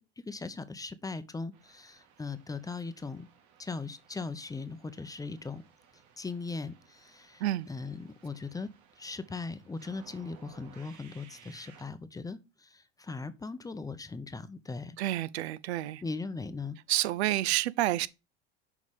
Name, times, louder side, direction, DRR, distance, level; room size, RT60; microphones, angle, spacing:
voice 1, 0.0-3.3 3.6-5.6 6.2-8.7 9.0-15.0 16.0-16.8, left 4 dB, 10° left, 0.7 m, -39 dB
sound 1, 1.5-11.9, right 7 dB, 55° right, 2.0 m, -59 dB
voice 2, 15.0-16.0 16.9-18.1, right 14 dB, 80° right, 0.5 m, -29 dB
6.5 x 4.7 x 3.5 m
hypercardioid pair, 85°, 32 cm